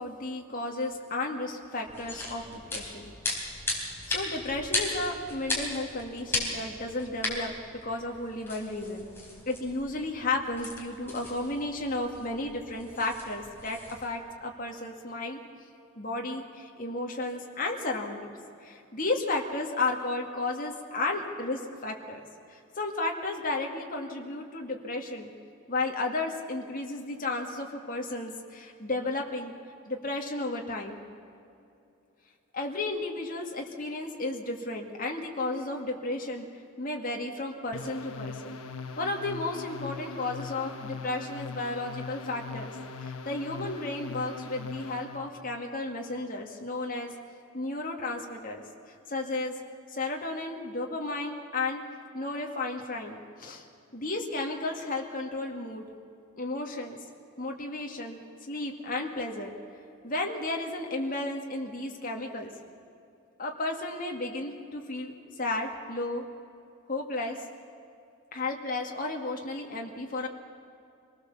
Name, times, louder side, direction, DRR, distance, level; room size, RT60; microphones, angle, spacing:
voice 1, 0.0-3.1 3.7-7.5 7.8-9.1 9.5-15.4 16.0-22.2 22.5-25.3 25.7-29.5 29.9-31.0 32.5-36.5 36.8-38.5 39.0-47.1 47.5-49.5 49.9-51.8 52.1-53.6 53.9-55.9 56.4-57.0 57.4-59.5 60.0-62.5 63.4-66.2 66.9-67.4 68.3-70.3, left 2 dB, 40° left, 1 dB, 2.1 m, -33 dB
sound 1, 1.8-14.1, left 2 dB, 10° left, 4.0 m, -37 dB
sound 2, 37.7-45.3, left 4 dB, 75° left, 1.3 m, -40 dB
24.5 x 18.5 x 7.2 m, 2.6 s
head